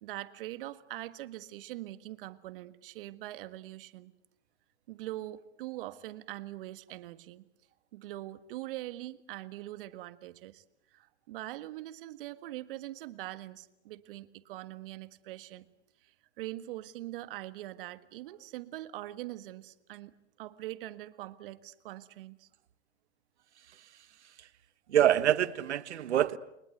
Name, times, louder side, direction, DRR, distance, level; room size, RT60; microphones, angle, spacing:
voice 1, 0.0-4.1 4.9-7.5 7.9-10.6 10.9-15.7 16.0-20.1 20.4-22.5, right 16 dB, 50° right, 1.7 m, -43 dB
voice 2, 24.9-26.4, right 11 dB, 70° right, 1.5 m, -26 dB
30.0 x 22.0 x 8.0 m
hypercardioid pair, 125°, 35 cm